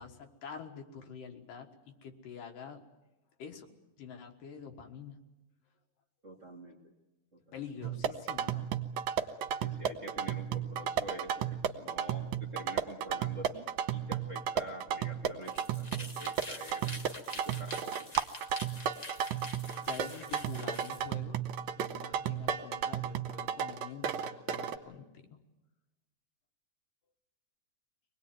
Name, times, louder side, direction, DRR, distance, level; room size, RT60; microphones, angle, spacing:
voice 1, 0.0-2.8 3.4-5.2 7.5-8.7 19.8-21.4 21.8-25.3, left 6 dB, 75° left, 4 dB, 3.2 m, -46 dB
voice 2, 6.2-6.9 7.3-8.2 9.6-17.0 17.3-18.1, right 1 dB, 30° right, 1 dB, 1.6 m, -47 dB
sound 1, 7.8-24.8, right 9 dB, 70° right, 2.1 m, -34 dB
sound 2, 15.4-21.0, left 1 dB, 40° left, 0.5 m, -46 dB
24.5 x 19.0 x 9.3 m, 1.0 s
omnidirectional pair, 3.9 m